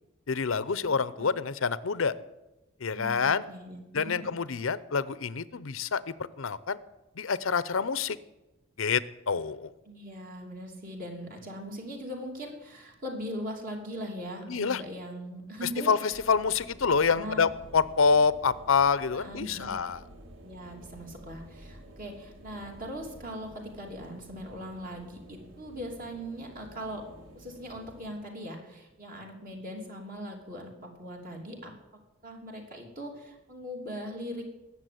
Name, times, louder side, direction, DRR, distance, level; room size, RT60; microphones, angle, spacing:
voice 1, 0.3-2.1 2.8-3.4 3.9-6.0 6.4-6.8 7.2-8.2 8.8-9.7 14.5-14.8 15.9-20.0, left 5 dB, 75° left, 17 dB, 0.7 m, -27 dB
voice 2, 0.8-1.3 2.9-4.3 9.9-15.9 17.0-17.4 19.2-19.7 20.4-27.1 27.3-31.7 32.2-34.5, equal, 40° right, 1 dB, 3.0 m, -40 dB
sound 1, 16.1-28.1, equal, 65° right, 2.7 m, -51 dB
20.0 x 7.4 x 9.3 m, 1.0 s
head